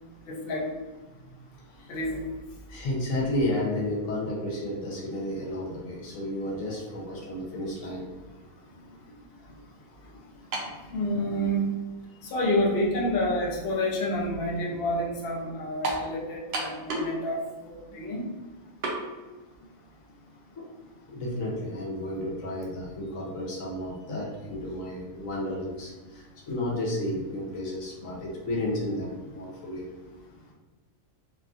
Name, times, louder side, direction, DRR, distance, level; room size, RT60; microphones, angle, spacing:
voice 1, 0.3-0.7 1.9-2.3 10.9-11.7 12.2-18.3, equal, 55° left, -2 dB, 0.7 m, -28 dB
voice 2, 1.6-2.0 2.7-8.1 12.1-12.2 20.5-20.7 21.1-29.9, left 1 dB, 75° left, -3 dB, 1.2 m, -32 dB
sound 1, 10.5-10.8 11.7-11.8 15.8-16.1 16.5-17.2 17.5-17.6 18.8-19.0, right 2 dB, 60° right, 0.7 m, -30 dB
3.1 x 2.4 x 2.4 m, 1.2 s
omnidirectional pair, 1.4 m